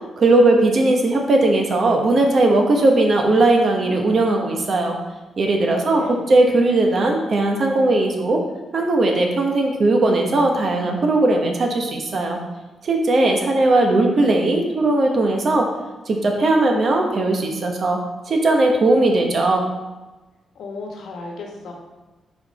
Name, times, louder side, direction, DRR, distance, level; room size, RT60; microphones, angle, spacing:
voice 1, 0.2-5.0 5.4-8.4 8.7-12.4 12.8-15.7 16.1-18.0 18.3-19.7, right 2 dB, 50° right, 2 dB, 1.0 m, -18 dB
voice 2, 5.8-6.2 20.5-21.8, left 3 dB, 75° left, 1 dB, 1.1 m, -33 dB
5.1 x 4.5 x 4.2 m, 1.2 s
cardioid pair, 105°, 0 cm